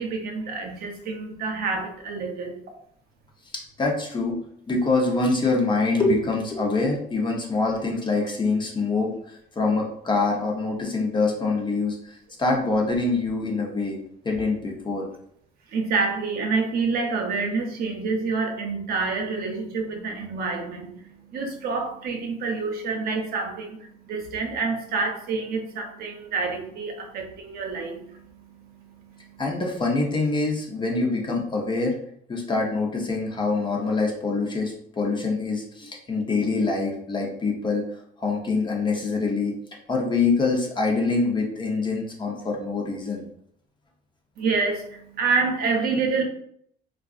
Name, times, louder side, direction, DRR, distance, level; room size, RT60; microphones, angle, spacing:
voice 1, 0.0-2.6 15.7-29.4 44.4-46.2, right 4 dB, 65° right, 2 dB, 0.7 m, -28 dB
voice 2, 3.8-4.4 4.7-14.0 14.2-15.1 29.4-32.0 32.3-37.8 38.2-39.5 39.9-43.2, left 3 dB, 25° left, 0 dB, 0.8 m, -25 dB
3.6 x 2.4 x 2.4 m, 0.68 s
cardioid pair, 110°, 17 cm